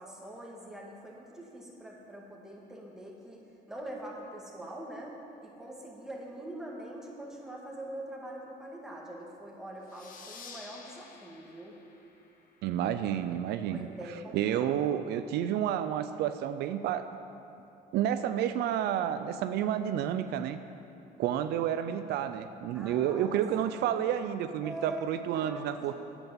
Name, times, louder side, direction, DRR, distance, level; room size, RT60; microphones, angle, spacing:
voice 1, 0.0-3.4 3.7-11.8 13.7-14.8 21.4-21.7 22.7-23.4 24.6-25.9, right 1 dB, 5° right, -3 dB, 2.1 m, -43 dB
sound 1, 9.9-13.1, left 5 dB, 55° left, 1.4 m, -51 dB
voice 2, 12.6-13.8 14.3-17.1 17.9-20.6 21.2-25.9, right 10 dB, 75° right, 10 dB, 0.5 m, -30 dB
9.1 x 8.1 x 7.2 m, 2.8 s
cardioid pair, 110°, 17 cm